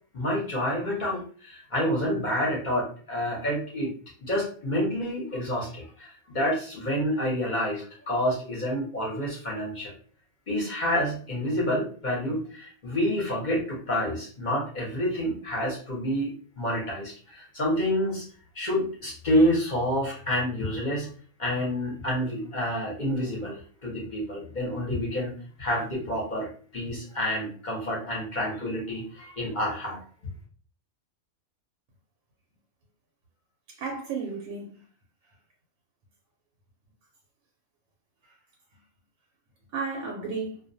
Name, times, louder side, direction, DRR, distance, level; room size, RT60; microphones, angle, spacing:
voice 1, 0.1-3.9 4.2-9.9 10.5-16.3 16.6-18.3 18.5-21.1 21.4-30.0, equal, 45° left, 0.7 m, -28 dB
voice 2, 33.7-34.8 39.7-40.6, right 4 dB, 90° right, 1.0 m, -33 dB
2.4 x 2.2 x 2.6 m
omnidirectional pair, 1.4 m